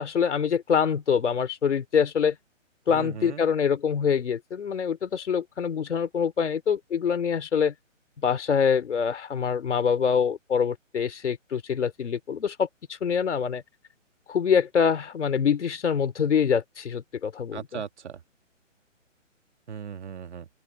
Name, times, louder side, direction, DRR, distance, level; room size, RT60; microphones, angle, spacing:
voice 1, 0.0-2.4 2.9-7.7 8.2-13.6 14.3-17.8, left 7 dB, 65° left, 3.6 m, -25 dB
voice 2, 2.9-3.5 17.5-18.2 19.7-20.5, right 7 dB, 60° right, 2.3 m, -37 dB
open air
hypercardioid pair, 155°, 39 cm